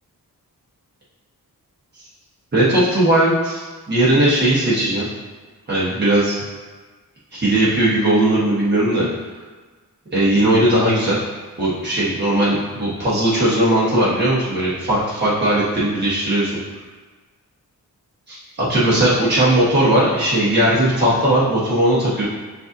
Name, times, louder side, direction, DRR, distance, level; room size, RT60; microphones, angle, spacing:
voice 1, 2.5-5.1 5.7-6.4 7.3-9.1 10.1-11.2 11.6-16.5 18.3-22.3, right 1 dB, 30° right, -9 dB, 1.1 m, -18 dB
7.7 x 2.6 x 2.6 m, 1.3 s
wide cardioid pair, 120°, 36 cm